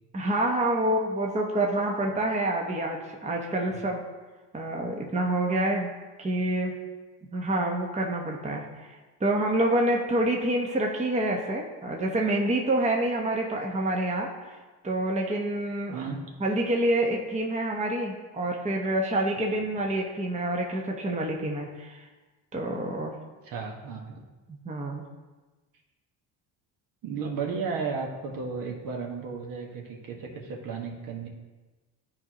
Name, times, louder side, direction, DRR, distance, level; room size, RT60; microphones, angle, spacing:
voice 1, 0.1-4.0 4.5-5.9 6.2-6.7 7.3-14.6 14.8-16.0 16.4-22.0 22.5-23.1 24.6-25.1, right 1 dB, 20° right, 0 dB, 1.0 m, -27 dB
voice 2, 23.4-24.2 27.0-31.3, right 5 dB, 55° right, 0 dB, 1.5 m, -34 dB
12.0 x 4.7 x 3.0 m, 1.2 s
supercardioid pair, 95°, 39 cm